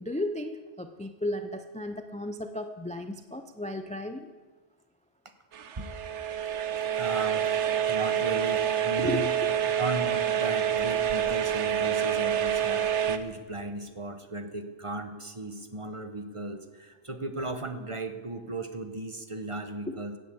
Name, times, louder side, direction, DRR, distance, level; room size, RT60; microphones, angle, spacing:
voice 1, 0.0-4.3 9.0-9.3, left 1 dB, 10° left, 7 dB, 0.5 m, -34 dB
sound 1, 5.5-13.2, right 9 dB, 75° right, 1.1 m, -27 dB
voice 2, 6.9-7.5 7.9-9.3 9.8-20.2, right 2 dB, 30° right, 7 dB, 1.0 m, -36 dB
14.5 x 9.6 x 8.4 m, 1.4 s
omnidirectional pair, 1.2 m